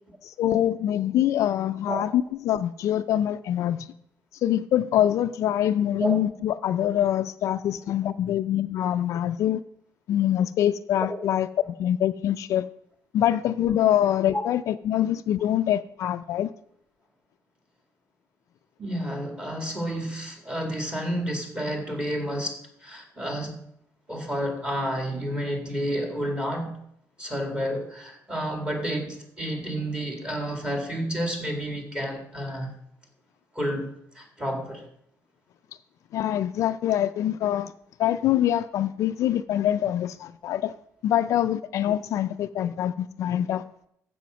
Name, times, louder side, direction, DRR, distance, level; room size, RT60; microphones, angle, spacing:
voice 1, 0.2-3.9 4.4-9.6 10.1-11.5 11.8-12.7 13.1-16.5 36.1-37.7 38.0-40.7 41.0-43.6, left 11 dB, 55° left, 0.4 m, -24 dB
voice 2, 18.8-23.6 24.1-26.7 27.2-32.7 33.6-34.9, equal, 15° right, 2.0 m, -30 dB
14.5 x 5.0 x 6.2 m
cardioid pair, 165°, 6 cm